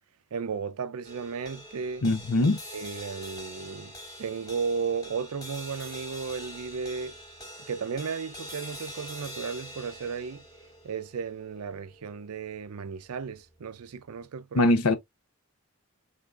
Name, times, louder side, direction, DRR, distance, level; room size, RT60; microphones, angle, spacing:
voice 1, 0.3-2.1 2.7-3.9 4.2-7.2 7.7-10.4 10.8-14.7, right 5 dB, 85° right, 0.5 m, -34 dB
sound 1, 1.0-13.5, equal, 15° left, 1.1 m, -45 dB
voice 2, 2.0-2.6 14.5-14.9, left 2 dB, 85° left, 0.7 m, -22 dB
3.6 x 3.5 x 2.4 m
head